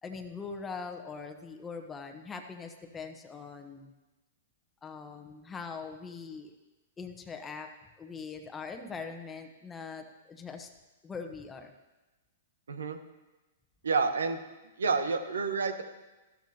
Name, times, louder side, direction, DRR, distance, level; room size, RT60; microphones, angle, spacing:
voice 1, 0.0-3.9 4.8-6.6 7.0-7.7 8.0-10.7 11.0-11.7, left 5 dB, 15° left, 4 dB, 1.0 m, -42 dB
voice 2, 12.7-13.0 13.8-14.4 14.8-15.8, right 4 dB, 85° right, 9 dB, 1.0 m, -29 dB
13.0 x 12.5 x 2.9 m, 1.1 s
hypercardioid pair, 120°, 0 cm